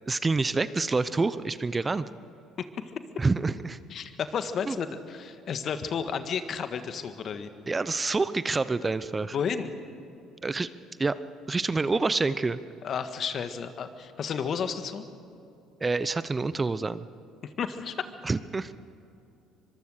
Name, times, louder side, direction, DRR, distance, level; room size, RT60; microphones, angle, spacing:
voice 1, 0.1-2.0 3.2-3.8 4.7-4.8 7.7-9.4 10.4-10.7 11.0-11.2 11.5-12.6 15.8-17.1 18.2-18.7, right 3 dB, 25° right, 15 dB, 0.8 m, -27 dB
voice 2, 2.6-2.9 3.9-7.5 8.8-9.0 9.3-9.7 12.8-15.0 17.4-18.0, left 6 dB, 50° left, 9 dB, 1.6 m, -32 dB
24.5 x 22.5 x 6.6 m, 2.6 s
hypercardioid pair, 60°, 0 cm